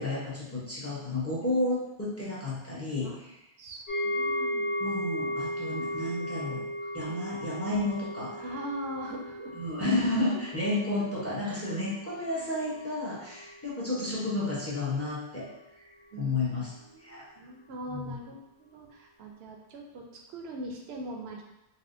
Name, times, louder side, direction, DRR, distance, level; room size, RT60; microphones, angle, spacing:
voice 1, 0.0-3.1 4.8-6.6 6.9-8.3 9.6-15.5 16.2-16.7 17.0-17.3 17.9-18.2, left 2 dB, 15° left, -7 dB, 0.7 m, -31 dB
voice 2, 3.6-5.0 5.4-5.8 6.8-7.2 8.3-9.5 11.4-11.7 12.2-12.9 16.1-16.5 16.8-21.4, right 1 dB, 70° right, 1 dB, 0.8 m, -42 dB
sound 1, 3.9-13.0 13.2-13.5 14.0-14.1, equal, 70° left, 1.2 m, -36 dB
4.2 x 2.0 x 2.5 m, 0.90 s
omnidirectional pair, 1.1 m